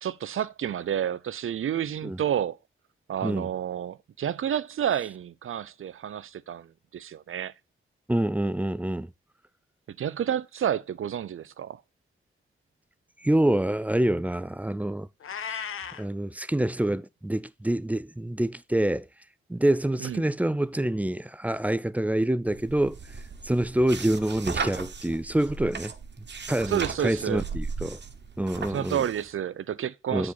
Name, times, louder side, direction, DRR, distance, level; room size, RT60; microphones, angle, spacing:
voice 1, 0.0-2.6 3.1-7.5 10.0-11.8 20.0-20.3 26.7-27.4 28.7-30.3, right 9 dB, 75° right, 0.5 m, -30 dB
voice 2, 8.1-9.1 13.2-15.1 15.5-15.6 16.0-19.1 19.5-23.0 23.4-25.9 26.5-28.0 28.4-29.0 30.1-30.3, right 1 dB, 5° right, 0.4 m, -26 dB
Meow, 15.2-16.1, left 7 dB, 85° left, 0.9 m, -35 dB
sound 1, 22.5-29.3, right 5 dB, 55° right, 1.1 m, -37 dB
8.5 x 4.9 x 3.9 m
wide cardioid pair, 80°, 21 cm